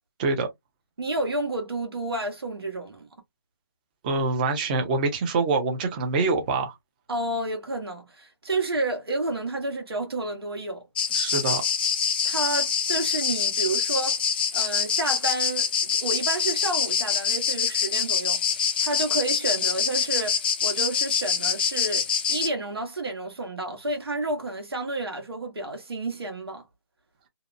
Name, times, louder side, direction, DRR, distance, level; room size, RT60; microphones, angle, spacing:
voice 1, 1.0-3.1 7.1-10.8 12.2-14.2 14.5-26.6, right 2 dB, 80° right, 1.1 m, -30 dB
voice 2, 4.0-6.7 11.1-11.6, right 3 dB, 20° right, 0.6 m, -25 dB
sound 1, 11.0-22.5, left 7 dB, 25° left, 0.4 m, -25 dB
2.7 x 2.0 x 2.4 m
figure-of-eight pair, 155°, 13 cm